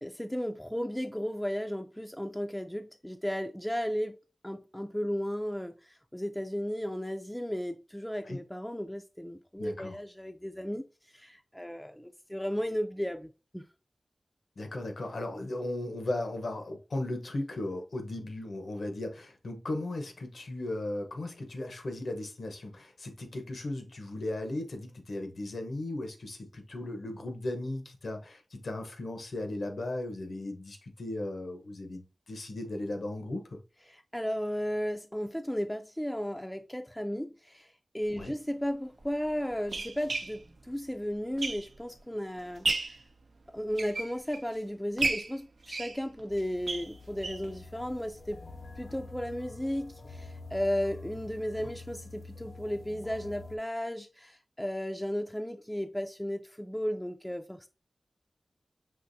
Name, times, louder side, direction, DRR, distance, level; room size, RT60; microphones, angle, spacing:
voice 1, 0.0-4.2 4.4-5.7 6.1-10.9 11.1-13.6 33.9-43.0 43.5-48.4 48.8-57.7, equal, 5° left, 0.3 m, -34 dB
voice 2, 9.6-10.0 14.6-33.6 38.1-38.3, left 1 dB, 85° left, 0.9 m, -36 dB
sound 1, 38.1-38.2 39.0-42.0 42.4-43.0 43.6-44.5 45.0-47.5 47.9-48.0 48.3-48.4 48.7-48.8, right 3 dB, 85° right, 0.5 m, -34 dB
sound 2, 46.3-53.6, left 3 dB, 65° left, 0.5 m, -47 dB
5.6 x 2.9 x 2.6 m
wide cardioid pair, 90°, 0 cm